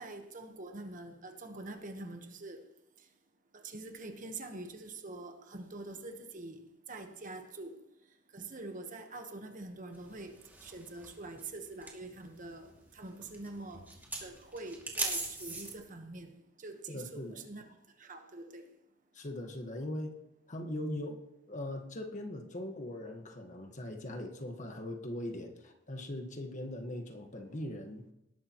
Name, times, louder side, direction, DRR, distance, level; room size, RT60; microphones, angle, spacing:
voice 1, 0.0-2.6 3.5-7.8 8.3-13.9 14.2-18.7, right 2 dB, 45° right, 1.2 m, -45 dB
sound 1, 9.9-15.8, right 2 dB, 10° right, 2.4 m, -41 dB
voice 2, 16.9-17.4 19.1-20.1 20.5-21.2 21.5-28.1, left 1 dB, 40° left, 1.5 m, -40 dB
19.0 x 11.5 x 3.1 m
head